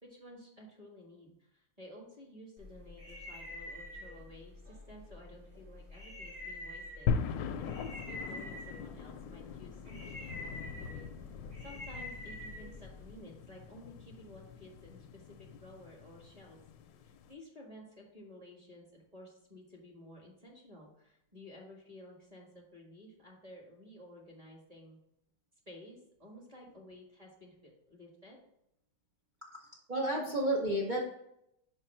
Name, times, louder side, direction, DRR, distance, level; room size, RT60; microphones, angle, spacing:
voice 1, 0.0-11.1 11.6-16.6 17.0-25.0 25.6-28.4, left 1 dB, 20° right, -2 dB, 1.4 m, -53 dB
sound 1, 2.6-13.2, left 1 dB, 45° right, 2.8 m, -47 dB
sound 2, 7.1-17.3, left 6 dB, 75° left, 1.1 m, -40 dB
voice 2, 29.5-31.0, right 1 dB, 85° right, -2 dB, 0.4 m, -32 dB
5.6 x 4.7 x 4.4 m, 0.78 s
omnidirectional pair, 2.2 m